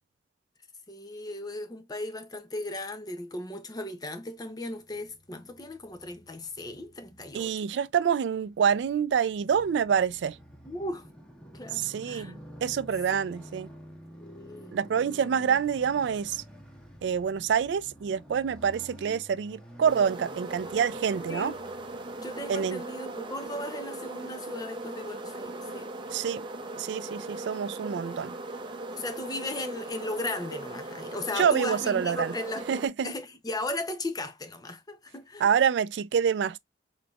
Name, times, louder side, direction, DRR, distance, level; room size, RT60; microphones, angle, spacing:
voice 1, 0.9-7.6 10.7-11.1 11.5-12.3 14.2-14.7 21.3-21.6 22.2-25.9 28.9-32.7 33.0-35.5, left 2 dB, 20° left, 0.6 m, -36 dB
Motorcycle, 4.7-22.9, equal, 5° left, 1.1 m, -50 dB
voice 2, 7.3-10.4 11.7-13.7 14.7-16.4 17.0-21.5 22.5-22.8 26.1-26.4 26.8-28.3 31.4-32.3 32.7-33.1 35.4-36.6, right 7 dB, 75° right, 0.3 m, -27 dB
sound 1, 19.9-32.9, right 2 dB, 25° right, 0.6 m, -39 dB
3.9 x 3.4 x 2.3 m
head